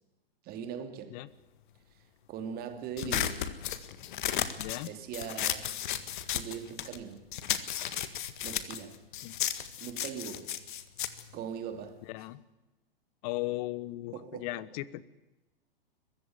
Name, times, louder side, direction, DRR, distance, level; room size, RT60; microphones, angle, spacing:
voice 1, 0.4-1.2 1.9-2.0 2.3-3.5 4.8-5.8 6.3-7.4 8.4-9.0 9.8-10.6 11.3-12.1 14.1-14.6, right 7 dB, 30° right, 2.8 m, -41 dB
sound 1, 3.0-7.0 7.3-12.1, left 11 dB, 55° left, 1.8 m, -34 dB
voice 2, 4.6-4.9 9.2-9.4 12.1-12.4 13.2-15.0, left 18 dB, 40° left, 1.2 m, -37 dB
22.0 x 15.0 x 9.4 m
figure-of-eight pair, 110°, 30 cm